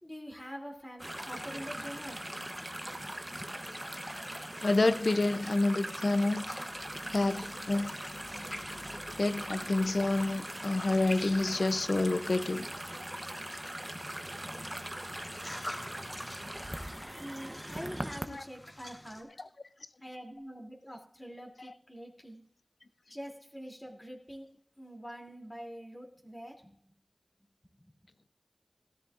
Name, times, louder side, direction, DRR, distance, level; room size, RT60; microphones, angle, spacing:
voice 1, 0.0-2.5 2.9-3.5 17.1-19.3 20.0-22.4 23.1-24.5 24.8-26.8, equal, 20° left, 2.8 m, -46 dB
sound 1, 1.0-18.3, right 1 dB, 15° right, 0.9 m, -41 dB
voice 2, 4.6-6.4 7.1-8.0 9.2-12.7 18.3-18.4 19.4-19.5, left 2 dB, 85° left, 0.5 m, -28 dB
sound 2, 6.4-12.6 13.7-19.2, left 1 dB, 40° left, 3.5 m, -48 dB
18.5 x 13.0 x 2.5 m
wide cardioid pair, 40°, 0 cm